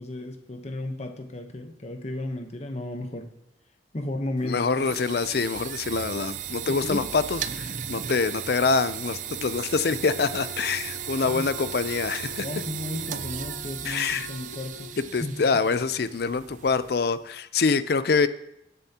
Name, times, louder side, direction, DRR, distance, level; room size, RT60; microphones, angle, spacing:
voice 1, 0.0-3.3 3.9-4.9 6.7-7.0 11.2-11.5 12.4-15.4, left 1 dB, 35° left, 5 dB, 0.9 m, -34 dB
voice 2, 4.4-12.5 13.8-14.3 15.1-18.3, left 4 dB, 55° left, 14 dB, 0.5 m, -25 dB
sound 1, 4.4-17.2, right 9 dB, 40° right, 0.4 m, -36 dB
Wind instrument woodwind instrument, 10.1-15.0, left 4 dB, 85° right, 2.3 m, -45 dB
20.0 x 7.0 x 2.9 m, 0.82 s
head